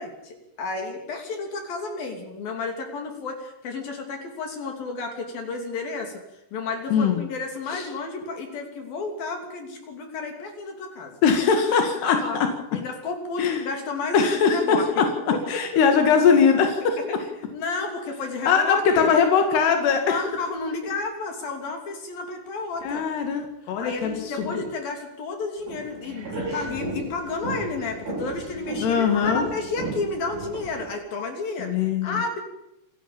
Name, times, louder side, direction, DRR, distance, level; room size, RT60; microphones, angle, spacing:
voice 1, 0.0-6.2 6.5-11.2 12.0-12.4 12.7-14.9 17.0-17.1 17.5-19.1 20.0-23.0 23.6-31.7 32.0-32.4, left 3 dB, 65° left, 4 dB, 4.8 m, -31 dB
voice 2, 6.9-7.2 7.7-7.8 11.2-12.5 13.4-13.6 14.1-17.0 18.5-20.2 22.8-24.7 28.8-29.5 31.6-32.4, left 6 dB, 90° left, 5 dB, 4.2 m, -21 dB
sound 1, 25.6-30.9, right 2 dB, 70° right, 8.8 m, -34 dB
28.0 x 12.5 x 9.0 m, 0.87 s
omnidirectional pair, 4.6 m